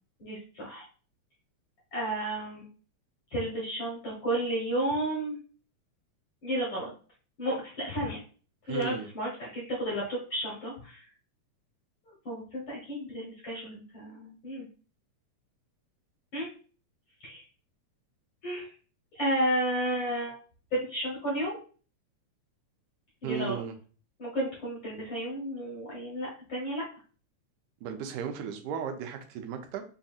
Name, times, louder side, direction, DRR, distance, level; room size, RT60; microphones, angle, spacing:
voice 1, 0.2-0.8 1.9-2.7 3.3-5.4 6.4-6.9 7.4-8.2 8.7-11.0 12.2-14.7 16.3-16.5 17.2-17.4 18.4-18.7 19.1-20.4 20.7-21.6 23.2-23.6 24.2-26.8, right 1 dB, 55° left, -4 dB, 1.4 m, -32 dB
voice 2, 8.7-9.1 23.2-23.8 27.8-29.8, right 7 dB, 90° right, 6 dB, 2.1 m, -35 dB
5.6 x 2.7 x 2.4 m, 0.39 s
omnidirectional pair, 3.5 m